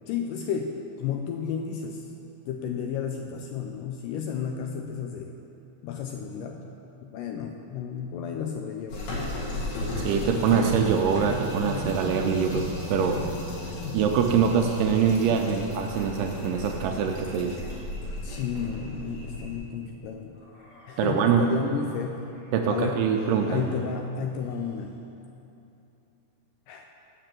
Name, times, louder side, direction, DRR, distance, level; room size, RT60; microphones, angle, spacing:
voice 1, 0.1-2.1 2.5-5.3 5.8-6.7 7.0-9.4 18.2-20.3 20.9-22.3 22.7-23.1 23.5-24.9 26.7-26.9, left 7 dB, 80° left, 3 dB, 1.9 m, -32 dB
sound 1, 8.9-19.6, left 1 dB, 65° left, 3.2 m, -34 dB
voice 2, 10.0-13.2 13.9-17.6 21.0-21.4 22.5-23.7, right 7 dB, 80° right, 3 dB, 2.0 m, -24 dB
sound 2, 16.0-19.5 20.3-21.6 22.1-22.7 23.1-25.0, equal, 40° left, 1.0 m, -47 dB
6.9 x 6.7 x 7.4 m, 2.8 s
omnidirectional pair, 4.1 m